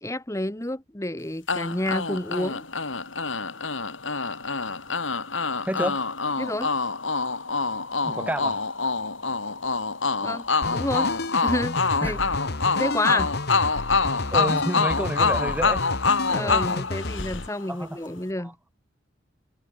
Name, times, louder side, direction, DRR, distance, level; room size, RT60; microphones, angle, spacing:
voice 1, 0.0-2.7 6.4-6.7 10.2-11.1 11.4-12.2 12.7-13.3 16.3-18.5, left 1 dB, 15° left, 1.5 m, -29 dB
sound 1, 1.5-17.7, left 4 dB, 85° left, 6.3 m, -26 dB
voice 2, 5.6-6.0 8.0-8.7 10.2-10.3 12.0-12.2 14.3-15.9 16.4-16.9 17.7-18.0 18.4-18.5, equal, 10° right, 2.6 m, -30 dB
sound 2, 10.6-17.5, left 2 dB, 55° left, 1.5 m, -32 dB
head